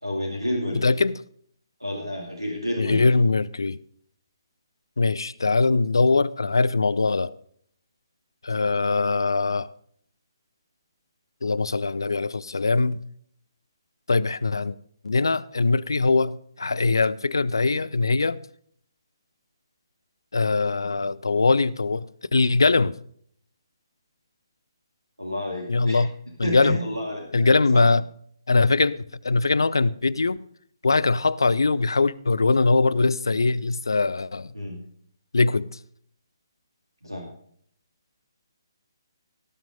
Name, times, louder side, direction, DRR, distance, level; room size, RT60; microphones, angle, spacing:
voice 1, 0.0-0.9 1.8-3.0 25.2-26.1 26.4-27.9 34.5-34.8 37.0-37.2, equal, 90° right, 2.3 m, -30 dB
voice 2, 0.8-1.2 2.8-3.8 5.0-7.3 8.4-9.7 11.4-13.0 14.1-14.7 15.0-18.4 20.3-22.9 25.7-26.1 26.4-26.8 27.3-28.0 28.5-29.0 29.2-30.4 30.8-34.5 35.3-35.7, left 3 dB, 65° left, 0.5 m, -22 dB
17.5 x 6.1 x 5.2 m
figure-of-eight pair, 140°, 2 cm